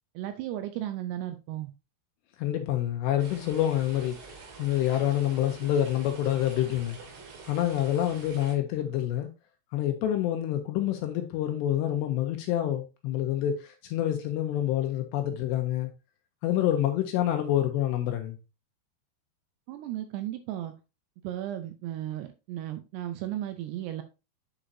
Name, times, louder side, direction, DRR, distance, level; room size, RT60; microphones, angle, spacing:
voice 1, 0.2-1.7 19.7-20.7 21.2-24.0, right 12 dB, 85° right, 2.4 m, -35 dB
voice 2, 2.4-7.0 7.5-9.3 9.7-15.9 16.4-18.4, left 12 dB, 80° left, 2.6 m, -27 dB
sound 1, 3.2-8.6, right 4 dB, 65° right, 3.7 m, -47 dB
10.0 x 4.9 x 2.7 m
omnidirectional pair, 5.4 m